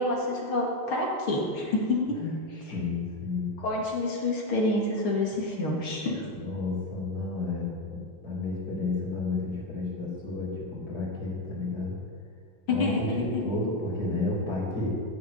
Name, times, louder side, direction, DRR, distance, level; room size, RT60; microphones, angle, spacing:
voice 1, 0.0-2.2 3.6-6.2 12.7-13.2, left 2 dB, 80° left, -2 dB, 3.3 m, -28 dB
voice 2, 2.7-3.5 6.3-12.0 12.7-14.9, left 2 dB, 50° left, -4 dB, 3.4 m, -31 dB
15.5 x 6.6 x 8.7 m, 2.3 s
omnidirectional pair, 2.3 m